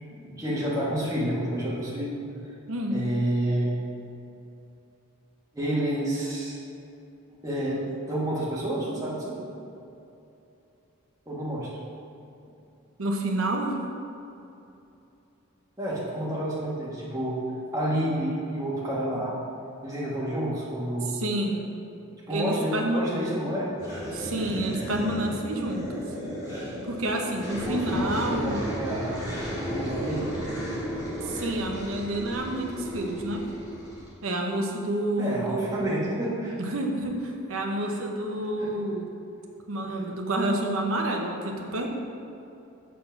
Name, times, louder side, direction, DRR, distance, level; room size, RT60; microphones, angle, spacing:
voice 1, 0.0-2.2 2.9-3.8 5.5-6.6 7.4-7.8 8.1-9.4 11.3-11.7 15.8-17.4 17.7-19.4 19.8-21.2 22.3-23.7 27.7-29.2 29.5-30.5 35.2-36.6 37.8-37.9 38.6-38.7 39.8-40.0, right 1 dB, 15° right, -7 dB, 1.6 m, -29 dB
voice 2, 2.7-3.0 13.0-13.8 21.0-21.6 22.3-23.1 24.1-26.0 26.9-28.6 31.2-33.5 34.2-36.1 36.6-39.1 39.7-41.9, right 1 dB, 80° right, 2 dB, 0.9 m, -29 dB
sound 1, 23.8-34.1, equal, 20° left, 1.5 m, -34 dB
7.2 x 4.3 x 5.8 m, 2.8 s
head